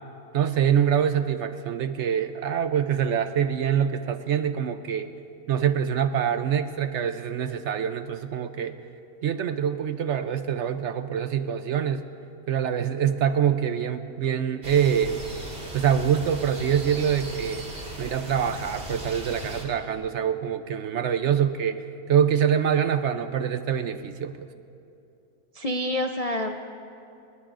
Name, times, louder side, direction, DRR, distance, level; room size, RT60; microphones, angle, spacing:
voice 1, 0.3-5.1 5.5-8.8 9.2-12.0 12.5-15.2 15.7-17.7 18.0-24.5, right 8 dB, 60° right, 10 dB, 0.8 m, -25 dB
sound 1, 14.6-19.6, equal, 45° right, 2.4 m, -38 dB
voice 2, 25.5-26.7, left 1 dB, 60° left, 3 dB, 0.3 m, -28 dB
29.5 x 19.5 x 2.5 m, 2.7 s
omnidirectional pair, 1.6 m